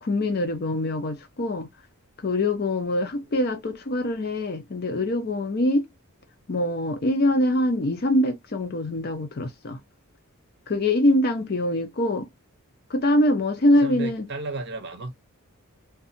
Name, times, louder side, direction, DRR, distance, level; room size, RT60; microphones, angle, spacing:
voice 1, 0.0-1.7 2.2-5.8 6.5-9.8 10.7-12.3 12.9-14.3, left 1 dB, 45° left, 0.5 m, -24 dB
voice 2, 13.8-15.1, right 2 dB, 50° right, 0.7 m, -34 dB
2.6 x 2.3 x 2.5 m
head